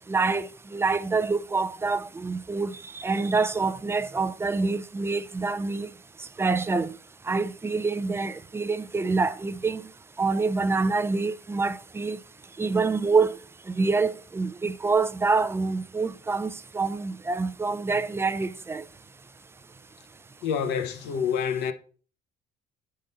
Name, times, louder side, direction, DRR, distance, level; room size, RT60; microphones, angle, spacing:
voice 1, 0.1-5.9 6.4-6.9 7.3-9.9 10.2-12.2 12.6-13.4 13.7-18.8, right 4 dB, 15° right, 0.4 m, -26 dB
voice 2, 20.4-21.7, left 7 dB, 85° left, 0.9 m, -27 dB
8.4 x 3.7 x 3.9 m
cardioid pair, 110°, 17 cm